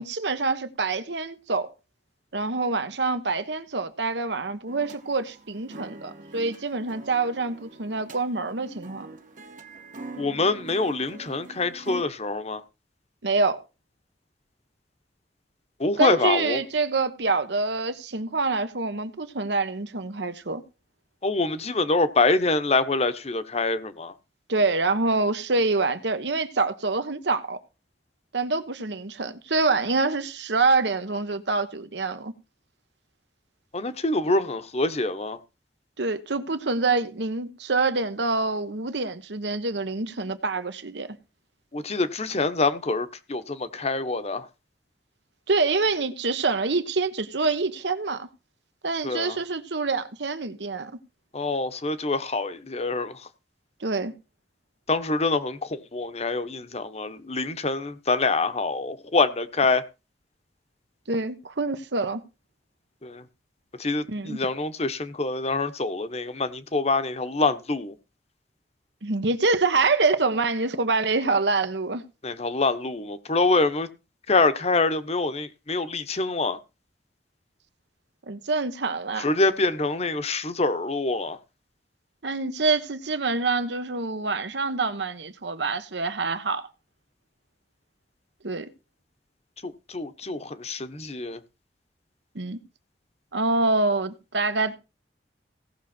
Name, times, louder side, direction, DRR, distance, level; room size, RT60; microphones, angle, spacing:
voice 1, 0.0-1.7 2.3-9.1 13.2-13.6 16.0-20.6 24.5-27.6 28.3-32.3 36.0-41.2 45.5-48.3 48.8-50.9 53.8-54.1 61.1-62.2 64.1-64.4 69.0-72.0 78.3-79.3 82.2-86.7 88.4-88.7 92.3-92.6 93.3-94.7, right 3 dB, 80° right, 1.2 m, -26 dB
sound 1, 4.7-12.0, right 3 dB, 45° right, 1.1 m, -43 dB
voice 2, 10.2-12.6 15.8-16.6 21.2-24.1 33.7-35.4 41.7-44.5 49.0-49.4 51.3-53.3 54.9-59.8 63.0-63.2 63.8-68.0 72.2-73.9 74.3-76.6 79.2-81.4 89.6-91.4, left 3 dB, 35° left, 1.0 m, -25 dB
17.0 x 6.3 x 4.4 m
head